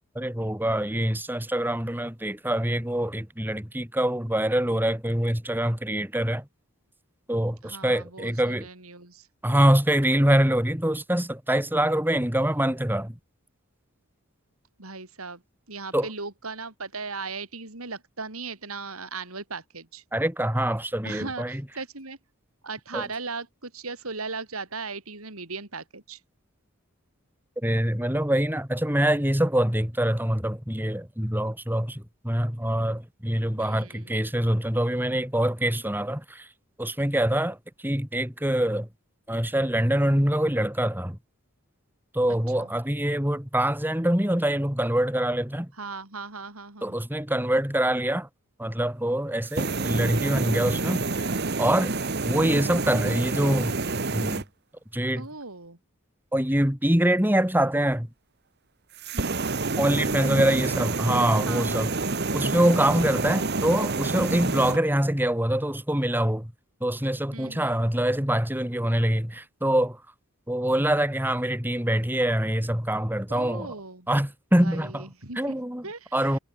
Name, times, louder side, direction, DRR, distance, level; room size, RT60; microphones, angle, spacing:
voice 1, 0.1-6.5 7.3-8.7 9.4-13.2 15.9-16.1 20.1-21.6 22.9-23.0 27.6-36.5 36.8-37.6 37.8-38.9 39.3-41.2 42.1-45.7 46.8-48.3 48.6-51.1 51.6-52.0 52.2-53.8 54.1-54.4 54.9-55.3 56.3-58.1 59.8-61.9 62.3-66.5 66.8-70.0 70.5-73.7 74.1-75.1 75.4-76.4, right 1 dB, 10° right, 3.1 m, -25 dB
voice 2, 7.6-9.6 14.8-15.4 15.7-20.0 21.0-22.2 22.6-26.2 33.6-34.1 42.3-42.7 45.8-46.9 55.2-55.8 59.1-59.6 60.4-60.8 61.5-62.0 67.3-67.8 73.3-74.1 74.6-75.6 75.8-76.4, right 4 dB, 90° right, 5.2 m, -38 dB
sound 1, 49.4-54.4 59.0-64.8, right 3 dB, 50° right, 1.5 m, -28 dB
head